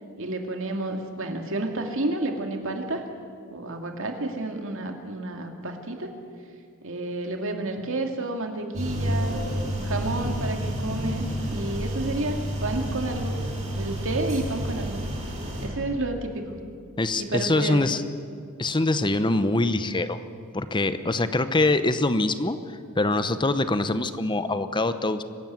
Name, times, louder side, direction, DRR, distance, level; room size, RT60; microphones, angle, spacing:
voice 1, 0.2-3.0 3.5-6.1 6.8-9.4 9.8-13.4 13.7-15.0 15.6-16.6 17.1-17.9, right 2 dB, 65° right, 4 dB, 2.3 m, -30 dB
sound 1, 8.7-15.7, equal, 35° right, 5.8 m, -29 dB
voice 2, 17.0-18.0 18.6-20.2 20.5-25.2, left 2 dB, 20° left, 12 dB, 0.8 m, -24 dB
23.0 x 13.0 x 9.3 m, 2.2 s
head